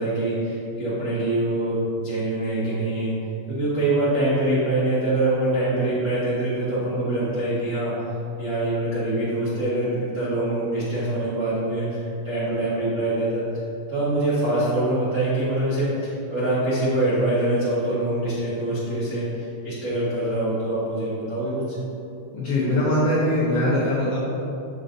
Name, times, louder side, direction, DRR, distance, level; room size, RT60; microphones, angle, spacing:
voice 1, 0.0-3.1 3.5-8.1 8.4-12.0 12.2-13.4 13.9-21.8, right 1 dB, 80° right, -11 dB, 0.7 m, -24 dB
voice 2, 22.3-24.2, left 1 dB, 70° left, -7 dB, 1.4 m, -21 dB
6.7 x 6.4 x 2.6 m, 2.7 s
omnidirectional pair, 3.7 m